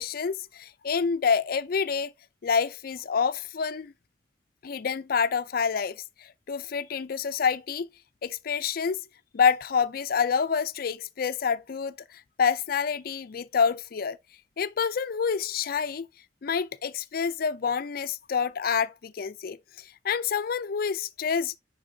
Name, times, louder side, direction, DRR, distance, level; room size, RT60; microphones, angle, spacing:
voice 1, 0.0-2.1 2.4-3.9 4.6-7.9 8.2-9.0 9.3-14.2 14.6-16.1 16.4-21.6, left 6 dB, 55° left, 0.4 m, -27 dB
10.0 x 4.0 x 2.7 m
head